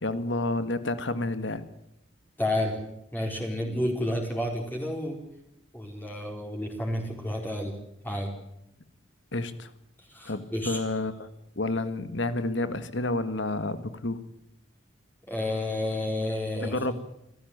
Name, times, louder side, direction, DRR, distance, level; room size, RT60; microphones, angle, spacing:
voice 1, 0.0-1.6 9.3-9.7 10.3-11.3 11.6-14.2 16.6-17.0, left 2 dB, 65° left, 11 dB, 1.8 m, -30 dB
voice 2, 2.4-2.7 3.1-5.2 5.7-7.7 8.0-8.3 10.1-10.8 15.3-16.8, left 1 dB, 10° left, 0 dB, 4.4 m, -30 dB
27.5 x 14.0 x 9.6 m, 0.82 s
head